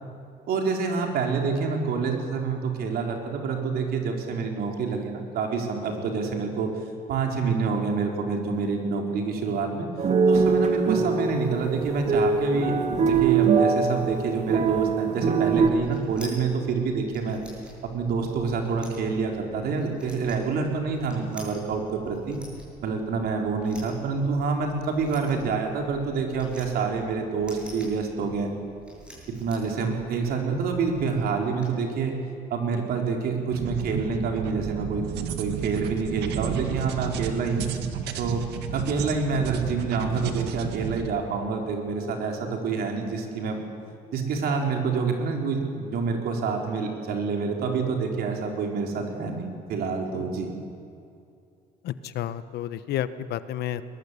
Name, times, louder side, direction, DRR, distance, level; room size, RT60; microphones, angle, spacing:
voice 1, 0.5-6.7 7.1-9.9 10.3-12.7 13.1-17.4 17.9-22.4 22.8-28.5 29.4-32.2 32.5-35.0 35.4-37.7 38.2-38.5 38.7-43.6 44.1-50.5, right 5 dB, 65° right, 2 dB, 4.2 m, -27 dB
sound 1, 10.0-15.7, right 5 dB, 45° right, 2.3 m, -23 dB
sound 2, 15.5-31.7, right 1 dB, 5° right, 7.9 m, -48 dB
sound 3, 33.5-41.1, right 7 dB, 80° right, 1.9 m, -32 dB
voice 2, 51.8-53.8, left 11 dB, 75° left, 14 dB, 1.1 m, -31 dB
21.5 x 21.0 x 8.3 m, 2.5 s
cardioid pair, 110°, 17 cm